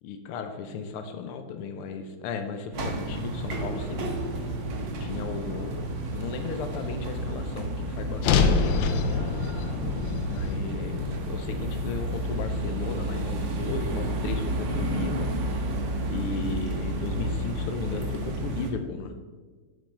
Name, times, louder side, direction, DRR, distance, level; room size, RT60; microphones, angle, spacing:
voice 1, 0.0-4.1 5.0-9.0 10.3-15.3 15.6-15.7 16.1-19.1, left 5 dB, 90° left, 7 dB, 1.6 m, -35 dB
sound 1, 2.7-18.7, right 1 dB, 65° right, 1.6 m, -31 dB
sound 2, 8.2-12.5, left 5 dB, 70° left, 1.3 m, -26 dB
7.5 x 5.3 x 5.5 m, 1.4 s
omnidirectional pair, 2.3 m